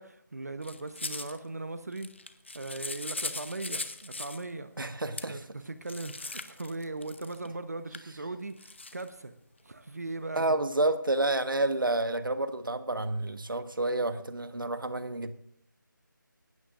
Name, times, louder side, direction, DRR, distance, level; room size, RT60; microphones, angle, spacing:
voice 1, 0.0-2.1 2.5-4.7 5.3-9.3 9.6-10.4, right 2 dB, 50° right, 10 dB, 0.9 m, -39 dB
sound 1, 0.6-1.4 1.9-4.4 5.2-5.3 5.8-7.5 7.9-8.0 8.6-9.1, left 3 dB, 35° left, 0.7 m, -39 dB
voice 2, 4.8-5.4 10.3-15.3, right 2 dB, 80° right, 10 dB, 1.3 m, -29 dB
18.0 x 12.5 x 2.6 m, 0.72 s
figure-of-eight pair, 175°, 11 cm